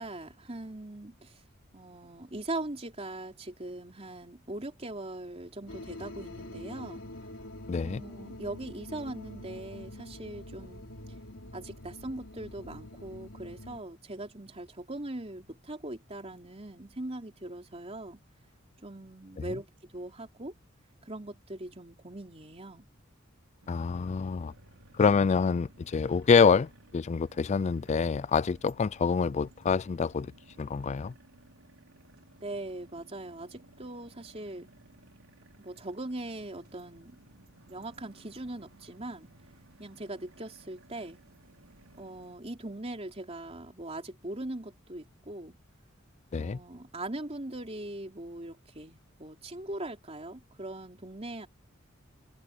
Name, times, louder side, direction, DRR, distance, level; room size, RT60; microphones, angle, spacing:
voice 1, 0.0-1.3 1.7-7.0 7.8-10.8 11.1-11.2 11.5-18.2 18.8-20.5 21.0-22.9 32.4-34.7 35.6-37.2 37.7-39.3 39.8-41.2 42.0-45.5 46.4-51.5, right 2 dB, 30° right, 3.6 m, -40 dB
sound 1, 5.7-13.8, left 1 dB, 80° left, 3.4 m, -45 dB
voice 2, 7.7-8.0 19.4-19.5 23.7-24.5 25.0-30.3 30.6-31.1 46.3-46.6, left 5 dB, 35° left, 0.3 m, -26 dB
sound 2, 23.6-42.4, right 2 dB, 90° right, 4.1 m, -58 dB
head